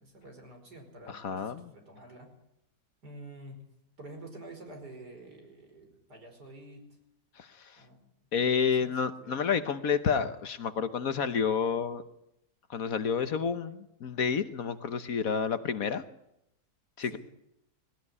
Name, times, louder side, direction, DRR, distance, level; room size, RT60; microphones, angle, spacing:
voice 1, 0.0-2.3 3.0-3.6 4.0-6.8 7.7-8.1 8.8-9.4 17.1-17.2, right 2 dB, 70° right, 3 dB, 5.6 m, -48 dB
voice 2, 1.1-1.7 7.4-7.8 8.3-12.0 12.7-16.0 17.0-17.2, left 6 dB, 60° left, 11 dB, 1.4 m, -30 dB
19.5 x 18.0 x 9.8 m, 0.81 s
omnidirectional pair, 1.8 m